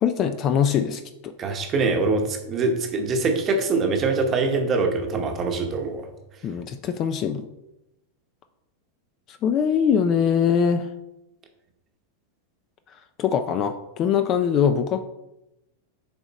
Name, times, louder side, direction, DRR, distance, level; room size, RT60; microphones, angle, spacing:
voice 1, 0.0-1.3 6.4-7.5 9.3-10.9 13.2-15.0, left 7 dB, 25° left, 9 dB, 0.4 m, -22 dB
voice 2, 1.4-6.1, right 3 dB, 20° right, 4 dB, 1.0 m, -23 dB
7.2 x 5.0 x 4.1 m, 0.92 s
supercardioid pair, 165°, 0 cm